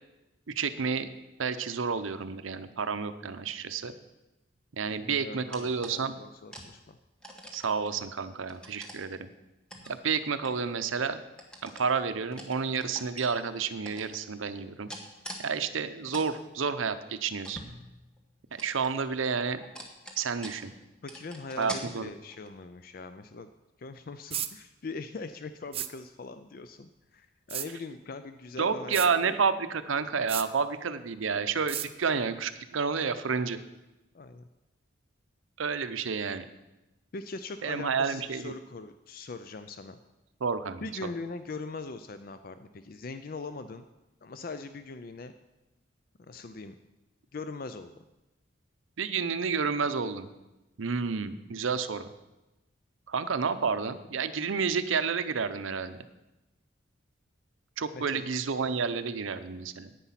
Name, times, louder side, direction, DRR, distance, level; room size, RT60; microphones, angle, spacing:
voice 1, 0.5-1.1 1.4-3.9 4.8-6.2 7.5-9.3 9.9-11.2 11.6-14.9 15.4-17.6 18.5-19.6 20.2-20.7 21.6-22.1 28.6-33.6 35.6-36.5 37.6-38.5 40.4-40.9 49.0-50.3 50.8-52.1 53.1-56.0 57.8-59.9, right 5 dB, 80° right, 12 dB, 0.7 m, -30 dB
voice 2, 4.9-7.0 21.0-23.5 23.8-29.3 34.1-34.5 37.1-40.0 40.8-43.9 44.2-45.3 46.3-46.7 47.3-48.0 57.9-58.3, left 3 dB, 45° left, 10 dB, 0.4 m, -41 dB
sound 1, 5.5-6.0 6.5-6.7 7.2-8.1 8.5-9.0 9.7-11.0 11.4-11.9 12.3-13.2 13.8-14.2 14.9-15.4 15.8-16.3 16.7-16.8 17.4-18.2 18.5-19.2 19.6-20.8 21.1-21.8 22.3-22.6, equal, 5° left, 1.2 m, -44 dB
sound 2, 24.3-24.5 25.7-25.9 27.5-27.7 28.9-29.1 30.3-30.5 31.7-31.9, right 11 dB, 30° right, 0.4 m, -33 dB
9.9 x 9.2 x 5.8 m, 1.0 s
head